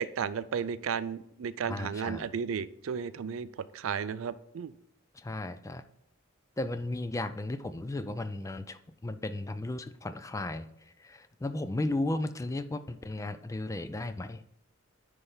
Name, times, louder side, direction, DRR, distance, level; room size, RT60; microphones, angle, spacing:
voice 1, 0.0-3.5 3.7-4.7, right 7 dB, 70° right, 15 dB, 0.4 m, -33 dB
voice 2, 1.7-2.3 5.1-5.8 6.6-14.5, left 2 dB, 15° left, 11 dB, 0.4 m, -35 dB
9.9 x 3.4 x 5.5 m, 0.73 s
head